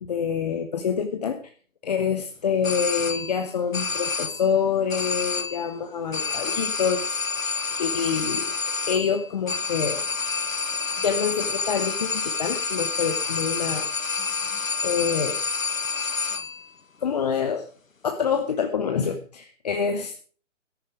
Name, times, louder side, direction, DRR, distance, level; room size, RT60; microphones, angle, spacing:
voice 1, 0.0-1.5 1.8-8.5 8.9-10.0 11.0-13.9 14.4-14.5 14.8-15.4 17.0-17.7 18.0-20.2, left 7 dB, 30° left, 7 dB, 0.9 m, -26 dB
sound 1, 2.6-3.5 3.7-4.5 4.9-5.7 6.1-16.7, left 4 dB, 85° left, 1.0 m, -28 dB
14.0 x 10.5 x 4.9 m, 0.42 s
figure-of-eight pair, 135°, 39 cm